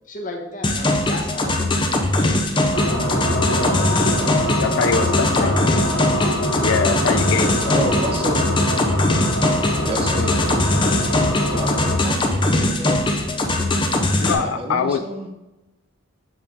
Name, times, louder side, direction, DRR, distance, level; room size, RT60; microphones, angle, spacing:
voice 1, 0.1-1.7 2.2-2.4 3.5-4.4 5.2-6.6 7.3-7.8, left 1 dB, 40° left, 1 dB, 1.1 m, -32 dB
sound 1, 0.6-14.3, left 1 dB, 25° left, 0.6 m, -21 dB
sound 2, 2.7-12.0, left 1 dB, 60° left, 1.1 m, -24 dB
voice 2, 4.6-5.5 6.6-7.5 14.2-15.0, left 5 dB, 80° left, 8 dB, 0.4 m, -22 dB
voice 3, 7.7-8.5 9.8-10.4 11.4-13.2 14.4-15.3, right 1 dB, 25° right, 3 dB, 0.8 m, -29 dB
7.5 x 4.5 x 3.6 m, 1.0 s
head